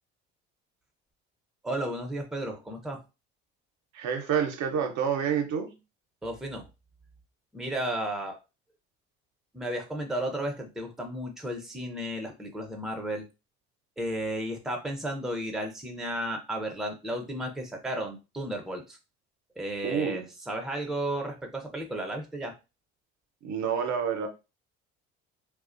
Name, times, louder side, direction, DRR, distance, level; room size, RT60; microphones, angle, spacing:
voice 1, 1.6-3.0 6.2-6.7 7.5-8.4 9.5-13.2 14.0-19.0 19.6-22.5, right 1 dB, ahead, 0.6 m, -33 dB
voice 2, 3.9-5.8 19.8-20.3 23.4-24.3, right 7 dB, 60° right, 0.7 m, -28 dB
2.3 x 2.1 x 2.5 m
hypercardioid pair, 65°, 33 cm